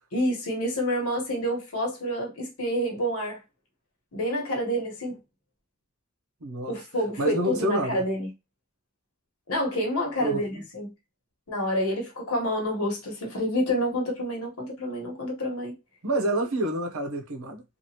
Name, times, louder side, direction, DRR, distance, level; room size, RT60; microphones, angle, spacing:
voice 1, 0.1-3.4 4.1-5.2 6.7-8.3 9.5-10.9 11.5-15.7, equal, 85° left, 1.2 m, -28 dB
voice 2, 6.4-6.7 7.2-8.0 10.2-10.6 16.0-17.6, right 1 dB, 75° right, 0.8 m, -28 dB
2.9 x 2.5 x 2.8 m
head